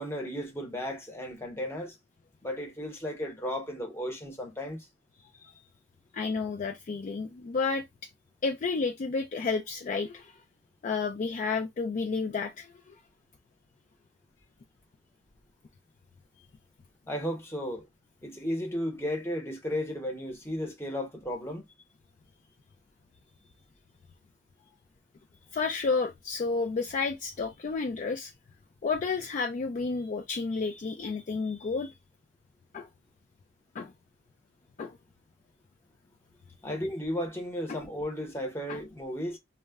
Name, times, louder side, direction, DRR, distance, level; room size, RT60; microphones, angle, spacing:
voice 1, 0.0-1.9 2.4-4.9 17.1-17.9 18.2-21.6 36.6-39.4, equal, 15° left, 0.7 m, -34 dB
voice 2, 6.1-7.8 8.4-10.3 10.8-13.0 25.5-28.3 28.8-31.9 32.7-32.9 33.7-33.9 34.8-35.0 36.7-36.8 37.7-37.8 38.7-38.8, left 4 dB, 40° left, 0.3 m, -31 dB
2.1 x 2.1 x 3.4 m
head